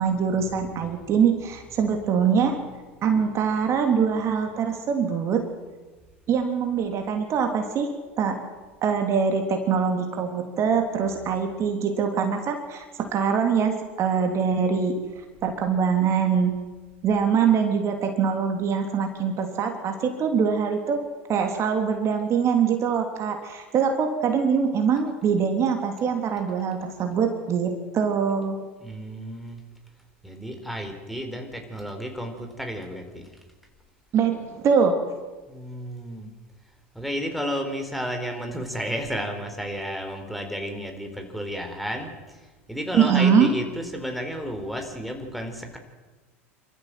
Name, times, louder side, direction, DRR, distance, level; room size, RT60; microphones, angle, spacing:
voice 1, 0.0-2.6 3.0-5.5 6.3-8.4 8.8-15.0 15.4-16.6 17.0-21.0 21.3-28.7 34.1-35.0 42.9-43.6, right 6 dB, 40° right, 4 dB, 3.2 m, -23 dB
voice 2, 28.8-29.6 30.2-33.2 35.5-36.3 36.9-42.1 42.7-45.8, equal, ahead, 3 dB, 4.3 m, -32 dB
26.5 x 14.0 x 7.8 m, 1.3 s
hypercardioid pair, 85°, 7 cm